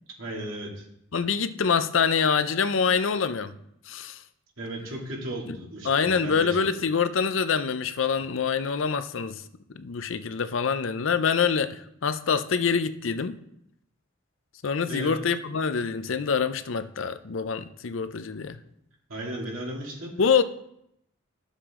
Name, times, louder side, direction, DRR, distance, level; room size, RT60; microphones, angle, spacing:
voice 1, 0.2-0.8 4.6-6.7 14.8-15.2 19.1-20.1, right 1 dB, 75° right, 2.6 m, -35 dB
voice 2, 1.1-3.5 3.9-4.2 5.5-5.6 5.9-9.4 9.7-13.3 14.6-18.6 20.2-20.4, left 6 dB, 70° left, 0.6 m, -25 dB
11.5 x 7.4 x 3.7 m
head